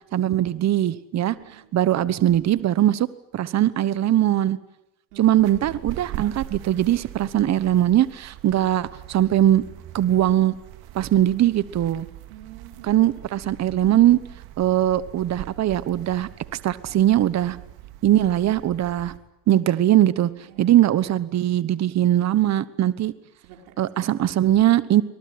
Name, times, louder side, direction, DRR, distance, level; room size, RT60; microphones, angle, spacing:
voice 1, 0.1-1.3 1.7-3.1 3.3-4.6 5.2-9.6 9.9-10.5 10.9-12.1 12.8-14.2 14.6-16.3 16.6-17.6 18.0-19.1 19.5-20.3 20.6-23.1 23.8-25.0, right 12 dB, 40° right, 16 dB, 1.2 m, -20 dB
voice 2, 1.3-1.7 5.1-5.3 12.3-13.0 20.4-20.7 23.4-23.9, right 12 dB, 85° right, 3 dB, 4.8 m, -47 dB
sound 1, 5.4-19.2, right 14 dB, 70° right, 2.3 m, -41 dB
25.5 x 19.0 x 9.6 m, 0.87 s
supercardioid pair, 110°, 40 cm